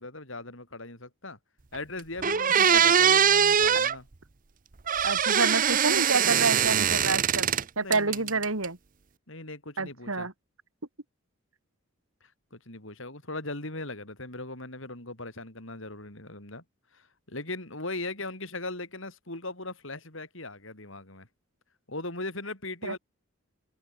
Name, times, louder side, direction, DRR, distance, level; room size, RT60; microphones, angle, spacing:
voice 1, 0.0-1.4 1.7-4.1 7.8-8.4 9.3-10.3 12.5-16.6 16.9-21.3 21.9-23.0, left 2 dB, 65° left, 5.6 m, -39 dB
sound 1, 1.7-1.8 2.2-4.0 4.9-7.6 7.9-8.7, right 8 dB, 40° right, 0.8 m, -22 dB
voice 2, 5.0-7.5 7.8-8.8 9.8-10.3 22.8-22.9, right 3 dB, 80° right, 3.0 m, -28 dB
head